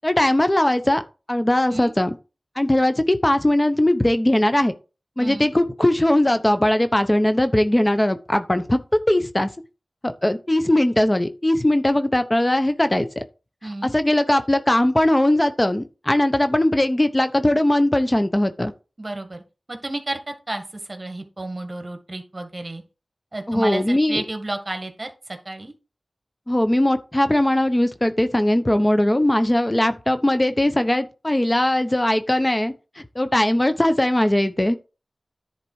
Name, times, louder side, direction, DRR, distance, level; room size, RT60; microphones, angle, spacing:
voice 1, 0.0-1.0 1.3-2.1 2.6-4.7 5.2-8.8 9.1-9.5 10.0-13.2 13.8-18.7 23.5-24.2 26.5-34.8, left 1 dB, 25° left, 0.9 m, -20 dB
voice 2, 5.2-5.5 13.6-13.9 19.0-19.4 19.7-22.8 23.3-25.7, right 2 dB, 40° right, 1.8 m, -32 dB
10.5 x 4.1 x 4.7 m
cardioid pair, 40°, 0 cm